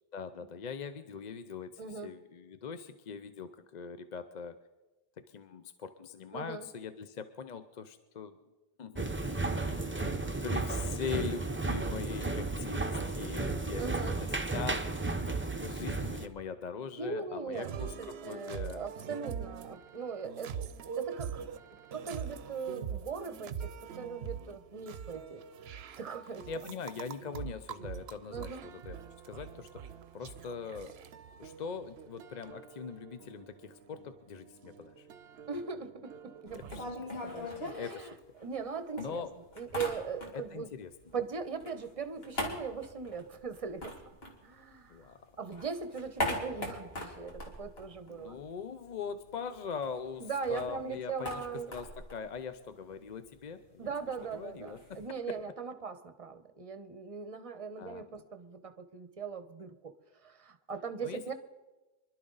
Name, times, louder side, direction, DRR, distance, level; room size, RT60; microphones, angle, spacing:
voice 1, 0.1-4.6 5.2-8.4 8.8-14.9 15.6-18.9 26.5-29.0 29.2-29.9 30.1-30.9 31.4-35.1 36.5-36.9 37.2-38.2 39.0-39.3 40.3-40.9 44.9-45.2 48.1-53.9 54.3-55.4 57.8-58.1 61.0-61.2, left 6 dB, 50° left, 11 dB, 0.6 m, -42 dB
voice 2, 1.8-2.1 6.3-6.7 13.8-14.2 17.0-17.7 18.0-20.5 21.0-21.4 21.9-25.4 25.7-26.8 28.3-28.6 35.5-36.9 37.2-38.1 38.4-39.2 39.6-40.7 41.1-43.9 44.4-45.0 45.4-48.4 50.2-51.8 53.8-59.9 60.2-61.3, right 5 dB, 35° right, 10 dB, 0.9 m, -40 dB
sound 1, 8.9-16.3, right 3 dB, 15° right, 0.7 m, -33 dB
sound 2, 17.5-37.0, right 7 dB, 75° right, 0.9 m, -44 dB
sound 3, 36.5-38.7 39.0-40.6 40.9-45.0 45.4-48.7 48.9-49.0 49.3-55.1, left 1 dB, 70° left, 2.6 m, -41 dB
25.0 x 12.0 x 3.9 m, 1.1 s
omnidirectional pair, 1.1 m